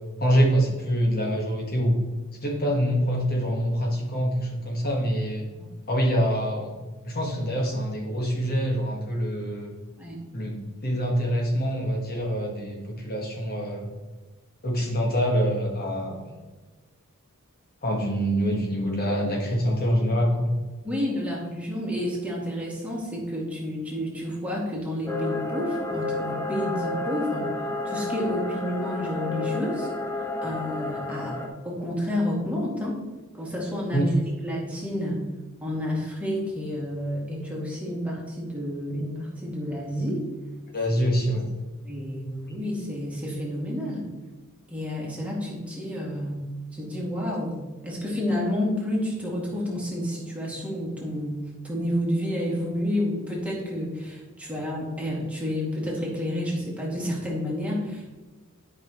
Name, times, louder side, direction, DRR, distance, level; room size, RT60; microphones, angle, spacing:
voice 1, 0.2-2.0 2.4-5.5 5.9-6.8 7.0-9.7 10.3-13.9 14.6-16.2 17.8-20.5 33.9-34.1 40.7-41.5, equal, 45° left, -1 dB, 1.5 m, -25 dB
voice 2, 20.8-27.5 27.8-29.9 30.4-33.0 33.3-34.1 34.4-35.3 35.6-40.2 41.8-44.1 44.7-46.5 46.7-58.1, left 1 dB, 5° right, -4 dB, 2.2 m, -30 dB
sound 1, 25.1-31.5, left 2 dB, 10° left, 0.8 m, -31 dB
11.5 x 5.6 x 3.0 m, 1.3 s
head